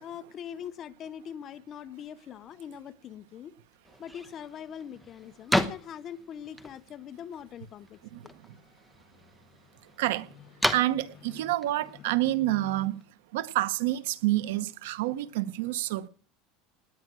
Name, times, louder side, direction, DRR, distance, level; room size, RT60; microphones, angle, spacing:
voice 1, 0.0-3.5 4.0-8.0 8.2-8.3 10.6-10.7 11.3-11.5 11.8-12.9, left 9 dB, 30° left, 0.8 m, -43 dB
sound 1, 3.8-13.0, equal, ahead, 1.0 m, -36 dB
voice 2, 10.7-13.0 13.3-16.1, right 15 dB, 90° right, 1.0 m, -28 dB
19.0 x 9.2 x 6.2 m
cardioid pair, 165°, 0 cm